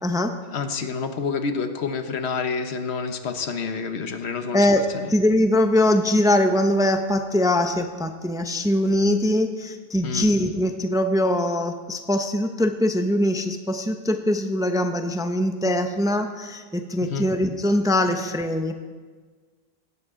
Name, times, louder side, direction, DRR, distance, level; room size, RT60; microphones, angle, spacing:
voice 1, 0.0-0.3 4.5-18.7, left 1 dB, 5° right, 6 dB, 0.5 m, -22 dB
voice 2, 0.5-4.7 4.9-5.1 10.0-10.3 17.0-17.3, left 5 dB, 80° left, 8 dB, 1.2 m, -28 dB
16.5 x 12.0 x 3.7 m, 1.5 s
omnidirectional pair, 1.1 m